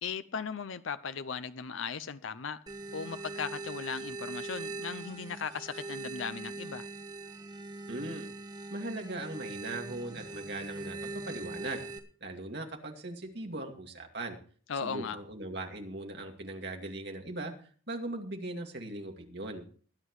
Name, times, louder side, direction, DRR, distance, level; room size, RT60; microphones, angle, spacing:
voice 1, 0.0-2.6 2.9-6.9 14.7-15.2, left 6 dB, 75° left, 0.6 m, -37 dB
sound 1, 2.7-12.0, right 3 dB, 20° right, 1.2 m, -41 dB
voice 2, 7.9-8.3 8.7-11.8 12.2-14.4 14.8-17.5 17.9-19.6, right 2 dB, 55° right, 2.3 m, -39 dB
20.5 x 9.6 x 3.2 m
head